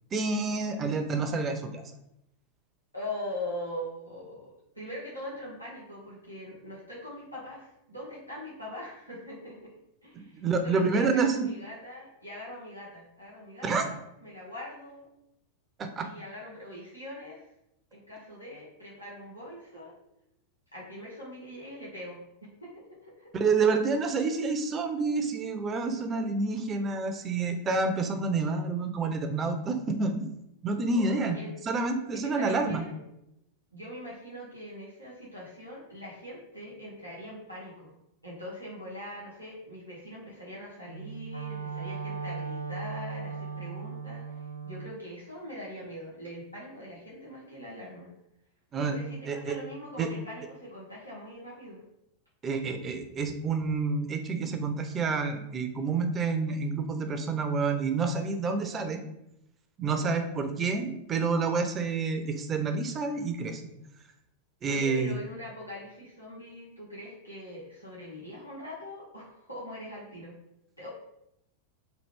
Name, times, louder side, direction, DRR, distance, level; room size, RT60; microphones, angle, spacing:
voice 1, 0.1-1.8 10.2-11.5 13.6-13.9 15.8-16.1 23.3-30.3 30.6-31.4 31.6-32.8 48.7-49.0 49.3-49.6 50.0-50.1 52.4-59.0 59.8-63.6 64.6-65.2, right 4 dB, 25° right, 6 dB, 0.4 m, -28 dB
voice 2, 2.9-9.7 10.0-15.1 16.0-17.5 17.9-19.9 20.7-22.2 22.6-23.3 30.9-31.5 32.1-33.0 33.7-37.9 38.2-48.1 48.8-51.8 60.0-60.3 64.7-70.3 70.8-70.9, left 1 dB, 90° left, -7 dB, 1.0 m, -42 dB
Wind instrument woodwind instrument, 40.8-45.0, right 5 dB, 85° right, 0.4 m, -37 dB
3.2 x 2.3 x 3.2 m, 0.81 s
figure-of-eight pair, 90°, 0 cm